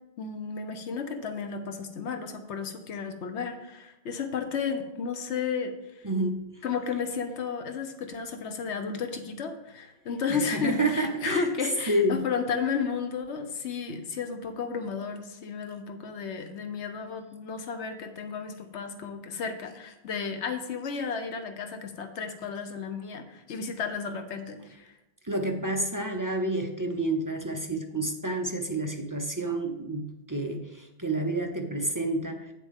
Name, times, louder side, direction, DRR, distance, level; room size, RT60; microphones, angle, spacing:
voice 1, 0.2-5.7 6.6-24.9, left 5 dB, 85° left, 7 dB, 1.1 m, -33 dB
voice 2, 6.0-6.4 10.3-11.5 11.9-12.2 25.2-32.5, right 1 dB, 25° right, 3 dB, 0.5 m, -29 dB
8.6 x 7.2 x 3.6 m, 0.95 s
omnidirectional pair, 1.1 m